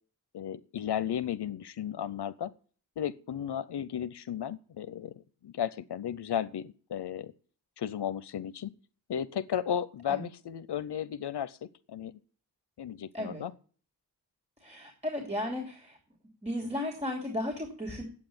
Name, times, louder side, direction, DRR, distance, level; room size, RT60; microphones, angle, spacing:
voice 1, 0.3-2.5 3.0-7.3 7.8-8.7 9.1-12.2 12.8-13.5, left 9 dB, 85° left, 15 dB, 0.7 m, -34 dB
voice 2, 14.6-16.0 16.4-18.0, left 1 dB, 15° right, 0 dB, 3.0 m, -35 dB
9.8 x 8.5 x 8.8 m, 0.43 s
wide cardioid pair, 120°, 39 cm